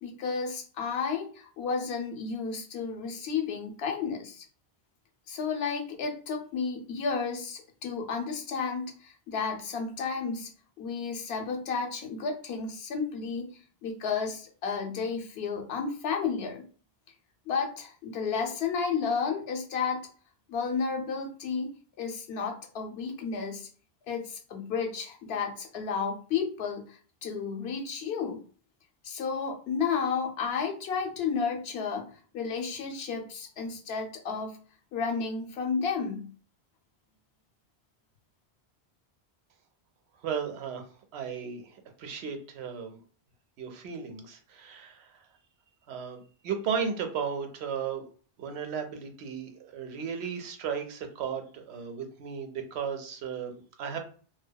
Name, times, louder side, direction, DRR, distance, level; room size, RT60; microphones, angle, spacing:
voice 1, 0.0-4.4 5.3-10.5 10.8-13.5 13.8-16.6 17.5-20.0 20.5-23.7 24.1-28.4 29.0-32.1 32.3-34.6 34.9-36.3, left 5 dB, 80° left, 3 dB, 0.8 m, -32 dB
voice 2, 40.2-40.8 41.1-43.0 43.6-45.2 45.9-48.1 48.4-54.0, right 7 dB, 90° right, 5 dB, 0.8 m, -35 dB
2.7 x 2.2 x 2.2 m, 0.41 s
omnidirectional pair, 1.1 m